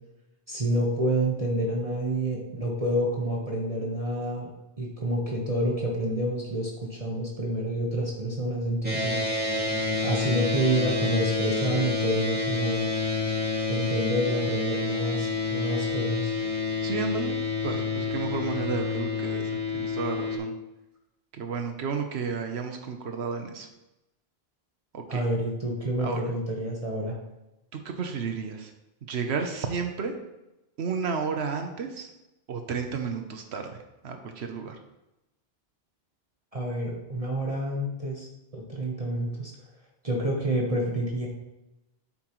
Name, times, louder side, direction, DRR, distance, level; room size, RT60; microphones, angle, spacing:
voice 1, 0.5-4.5 4.8-9.2 10.0-12.9 13.7-16.3 25.1-27.1 36.5-38.3 38.5-39.5 40.0-41.3, right 1 dB, 35° right, -2 dB, 1.3 m, -28 dB
sound 1, 8.8-20.4, left 4 dB, 10° right, 2.3 m, -28 dB
voice 2, 16.8-17.4 17.6-20.5 21.3-23.7 24.9-25.2 26.0-26.2 27.7-28.7 29.1-30.1 30.8-32.1 32.5-34.8, right 5 dB, 85° right, 5 dB, 1.1 m, -32 dB
8.3 x 7.6 x 3.1 m, 0.94 s
omnidirectional pair, 1.1 m